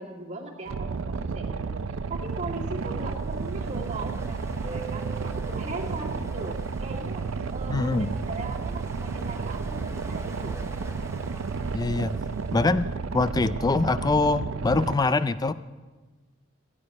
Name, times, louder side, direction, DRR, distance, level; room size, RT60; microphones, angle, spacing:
voice 1, 0.0-1.8 2.1-7.3 7.5-10.6, right 2 dB, 35° right, -2 dB, 2.0 m, -39 dB
Boat Water vehicle, 0.7-14.9, right 4 dB, 90° right, 0.5 m, -32 dB
Ocean, 2.1-13.1, right 2 dB, 15° right, 0.8 m, -45 dB
voice 2, 7.7-8.1 11.7-12.2 12.5-12.9 13.1-15.5, left 3 dB, 20° left, 14 dB, 0.3 m, -24 dB
15.0 x 9.7 x 5.3 m, 1.3 s
head